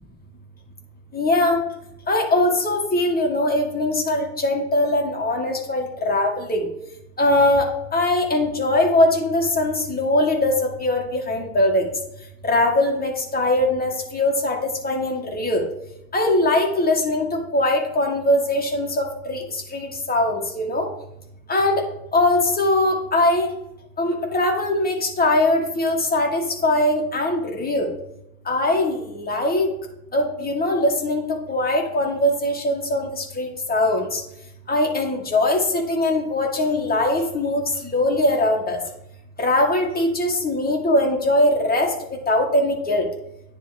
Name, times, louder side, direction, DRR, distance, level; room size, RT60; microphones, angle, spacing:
voice 1, 1.1-1.6 2.1-6.7 7.2-11.9 12.4-15.6 16.1-20.9 21.5-21.8 22.1-23.5 24.0-27.9 28.5-29.7 30.1-31.2 31.5-34.2 34.7-38.8 39.4-41.9 42.3-43.1, left 1 dB, 20° left, 1 dB, 1.9 m, -21 dB
9.7 x 3.7 x 3.4 m, 0.83 s
hypercardioid pair, 65°, 44 cm